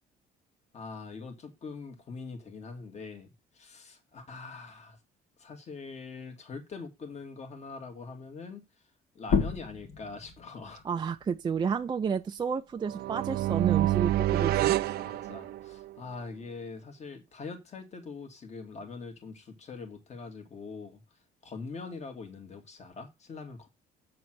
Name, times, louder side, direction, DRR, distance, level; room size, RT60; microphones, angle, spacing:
voice 1, 0.7-5.0 5.4-8.6 9.1-10.8 15.0-21.0 21.4-23.7, left 4 dB, 40° left, 2.2 m, -43 dB
sound 1, 9.2-14.4 14.8-16.6, left 6 dB, 60° left, 1.9 m, -36 dB
voice 2, 10.8-14.7, right 6 dB, 25° right, 0.5 m, -31 dB
sound 2, 12.9-15.9, right 14 dB, 70° right, 0.7 m, -27 dB
7.7 x 4.2 x 6.1 m
cardioid pair, 110°, 17 cm